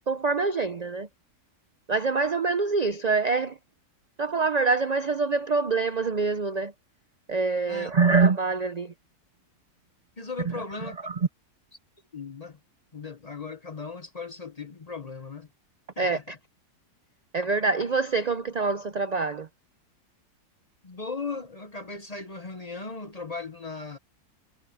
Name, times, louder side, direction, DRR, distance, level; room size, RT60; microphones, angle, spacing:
voice 1, 0.1-1.1 1.9-3.6 4.2-6.7 7.3-8.9 10.5-10.6 11.0-11.2 16.0-16.4 17.3-19.5, right 4 dB, 65° right, 0.4 m, -25 dB
voice 2, 10.2-11.0 12.1-12.6 12.9-15.5 16.0-16.4 20.8-24.0, left 4 dB, 30° left, 0.8 m, -37 dB
omnidirectional pair, 1.7 m